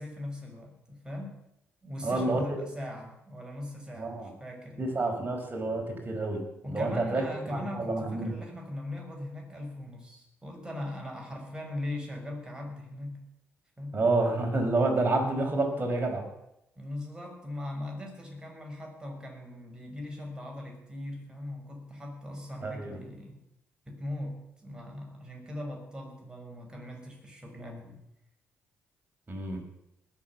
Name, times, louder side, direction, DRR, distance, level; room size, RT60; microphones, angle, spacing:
voice 1, 0.0-1.4 1.8-4.9 6.6-13.2 13.8-14.0 16.8-23.4 23.9-28.0, left 1 dB, 15° right, 0 dB, 6.1 m, -40 dB
voice 2, 2.0-2.6 4.0-4.3 4.8-6.4 6.7-7.2 7.5-8.3 13.9-16.2 22.6-23.0 29.3-29.6, right 2 dB, 30° right, 1 dB, 5.0 m, -28 dB
20.0 x 7.5 x 7.2 m, 0.83 s
hypercardioid pair, 50°, 6 cm